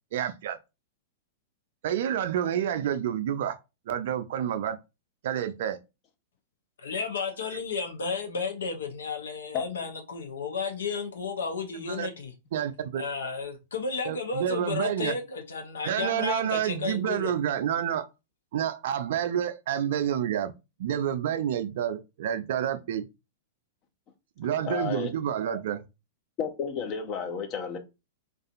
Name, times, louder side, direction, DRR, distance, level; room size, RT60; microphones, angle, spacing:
voice 1, 0.1-0.6 1.8-3.6 3.9-4.8 5.2-5.8 11.8-12.1 12.5-13.0 14.0-15.2 15.8-18.1 18.5-20.5 20.8-23.0 24.4-25.8, right 10 dB, 65° right, 0.4 m, -29 dB
voice 2, 6.8-12.3 12.9-17.3, left 5 dB, 75° left, 0.7 m, -33 dB
voice 3, 24.6-25.1 26.4-27.8, left 7 dB, 40° left, 0.7 m, -31 dB
2.5 x 2.3 x 2.4 m
hypercardioid pair, 105°, 0 cm